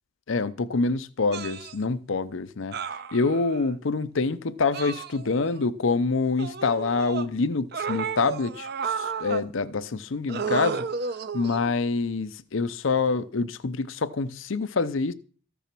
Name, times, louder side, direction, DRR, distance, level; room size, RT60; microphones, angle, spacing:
voice 1, 0.3-10.9 11.3-15.1, left 4 dB, 70° left, 0.6 m, -26 dB
sound 1, 1.3-1.7 2.7-3.6 4.7-5.6 6.4-7.3 7.7-9.5 10.3-11.8 12.9-13.1, right 5 dB, 50° right, 0.8 m, -32 dB
14.5 x 7.0 x 6.0 m
head